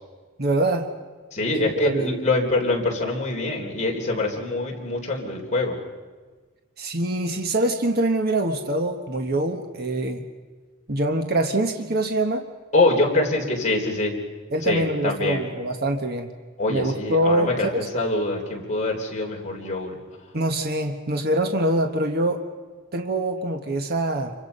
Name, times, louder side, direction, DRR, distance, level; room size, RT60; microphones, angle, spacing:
voice 1, 0.4-0.9 1.6-2.2 6.8-10.2 10.9-12.4 14.5-16.3 16.7-17.9 20.3-22.4 22.9-24.3, right 1 dB, 45° right, 5 dB, 1.3 m, -24 dB
voice 2, 1.3-5.8 12.7-14.1 14.6-15.4 16.6-17.7 17.9-20.0, left 2 dB, 35° left, 0 dB, 3.6 m, -24 dB
28.0 x 24.5 x 5.5 m, 1.4 s
head